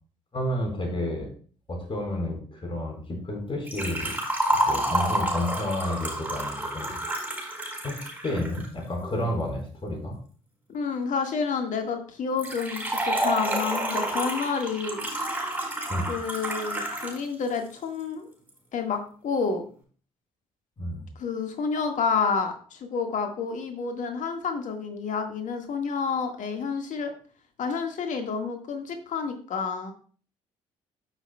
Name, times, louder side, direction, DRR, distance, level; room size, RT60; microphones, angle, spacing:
voice 1, 0.3-1.3 1.7-4.2 4.7-7.0 7.8-8.0 8.2-10.2 15.9-16.1 20.8-21.0, left 1 dB, 35° left, 1 dB, 4.3 m, -30 dB
Liquid, 3.7-8.6 12.4-17.2 17.5-17.6 18.5-18.6, right 1 dB, 10° right, 4.4 m, -29 dB
voice 2, 10.7-15.2 16.1-18.3 18.7-19.6 21.2-27.1 27.6-29.9, left 5 dB, 50° left, 5 dB, 1.7 m, -29 dB
14.0 x 6.1 x 2.3 m, 0.43 s
figure-of-eight pair, 45°, 16 cm